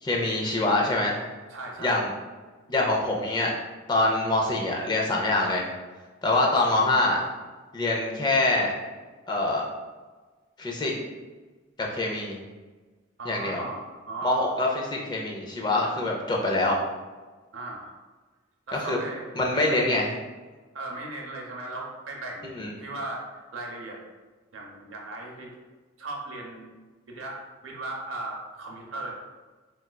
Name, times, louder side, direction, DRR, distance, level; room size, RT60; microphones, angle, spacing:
voice 1, 0.0-1.2 1.8-2.1 2.7-3.5 3.9-5.7 6.2-7.2 7.7-8.7 9.3-9.7 10.6-10.9 11.8-12.4 13.3-13.6 14.2-16.8 18.7-19.0 19.4-20.1 22.5-22.7, left 2 dB, 20° left, -2 dB, 0.4 m, -25 dB
voice 2, 1.5-2.1 13.2-14.5 17.5-17.9 18.7-19.8 20.7-24.0 24.5-25.6 26.0-26.7 27.1-29.1, right 2 dB, 75° right, -1 dB, 0.6 m, -37 dB
4.2 x 2.3 x 2.2 m, 1.3 s
head